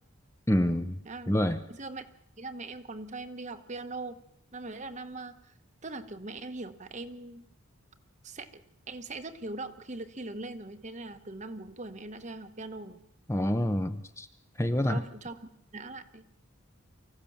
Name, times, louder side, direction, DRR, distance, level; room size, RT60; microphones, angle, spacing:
voice 1, 0.5-1.0 1.3-1.6 13.3-14.3 14.6-15.0, left 1 dB, 15° left, 8 dB, 0.7 m, -27 dB
voice 2, 1.7-2.0 2.4-4.2 4.5-5.5 5.8-7.5 8.2-8.6 8.9-13.0 14.9-15.4 15.7-16.2, right 2 dB, 35° right, 9 dB, 1.1 m, -41 dB
24.5 x 15.5 x 7.2 m, 0.77 s
head